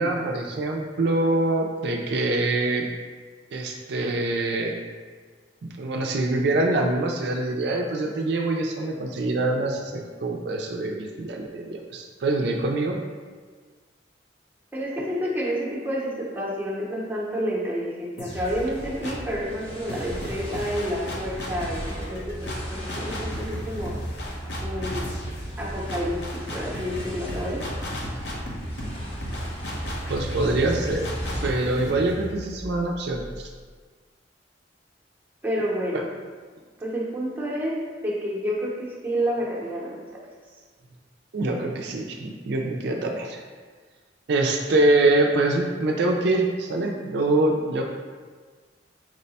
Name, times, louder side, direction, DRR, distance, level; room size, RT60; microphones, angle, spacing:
voice 1, 0.0-2.9 3.5-4.7 5.8-13.0 29.3-29.4 30.1-31.1 31.4-33.5 35.9-36.0 41.3-43.4 44.3-47.8, right 2 dB, 65° right, 1 dB, 0.4 m, -24 dB
voice 2, 14.7-24.0 24.6-25.1 25.6-27.6 35.4-36.1 36.8-40.2, equal, 10° right, -5 dB, 0.7 m, -29 dB
sound 1, 18.2-19.4 19.9-33.6, equal, 65° left, 0.8 m, -36 dB
sound 2, 18.4-31.5, right 1 dB, 30° left, 0.8 m, -36 dB
4.7 x 2.1 x 4.0 m, 1.5 s
head